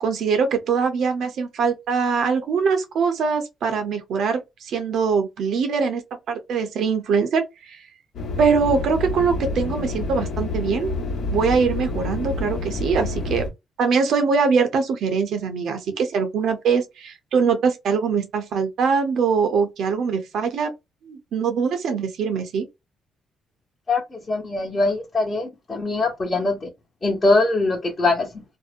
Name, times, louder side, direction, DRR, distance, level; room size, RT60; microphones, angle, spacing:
voice 1, 0.0-6.0 6.3-7.8 8.4-10.9 11.3-13.5 13.8-20.7 21.1-22.7, right 5 dB, 70° right, 0.6 m, -22 dB
sound 1, 8.1-13.5, left 2 dB, 65° left, 1.0 m, -28 dB
voice 2, 23.9-26.7 27.0-28.4, left 2 dB, 35° left, 1.0 m, -22 dB
2.6 x 2.0 x 2.4 m
cardioid pair, 90°, 0 cm